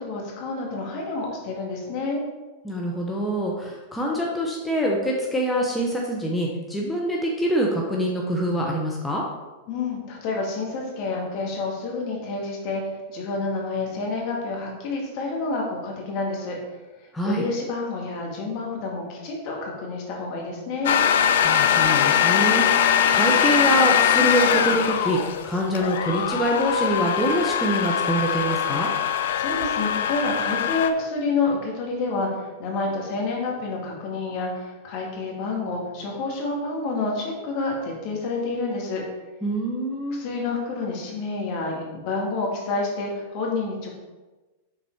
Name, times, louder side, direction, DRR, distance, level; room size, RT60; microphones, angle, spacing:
voice 1, 0.0-2.2 9.7-16.6 17.2-20.9 29.3-32.3 32.6-39.0 40.1-43.9, left 3 dB, 50° left, -1 dB, 1.9 m, -28 dB
voice 2, 2.6-9.2 17.1-17.4 21.4-28.9 39.4-40.2, right 1 dB, 5° left, -2 dB, 1.0 m, -25 dB
sound 1, 20.8-30.9, left 9 dB, 70° left, 0.4 m, -22 dB
6.1 x 4.1 x 4.5 m, 1.2 s
hypercardioid pair, 105°, 0 cm